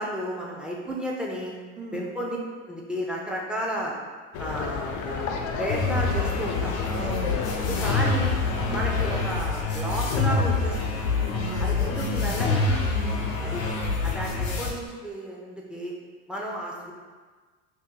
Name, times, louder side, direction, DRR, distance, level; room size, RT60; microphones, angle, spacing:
voice 1, 0.0-1.5 1.9-2.4 2.7-3.9 4.4-5.3 5.6-6.8 7.7-8.4 8.7-10.8 11.6-12.7 13.4-13.7 14.0-15.9 16.3-16.9, equal, ahead, -2 dB, 0.5 m, -32 dB
sound 1, 4.3-9.3, left 6 dB, 50° left, 0.5 m, -32 dB
sound 2, 5.7-14.7, left 3 dB, 90° left, 0.6 m, -26 dB
voice 2, 7.0-7.8 8.6-8.9 11.3-12.4 12.9-13.2, right 1 dB, 85° right, -3 dB, 0.8 m, -37 dB
2.8 x 2.6 x 3.6 m, 1.4 s
hypercardioid pair, 80°, 39 cm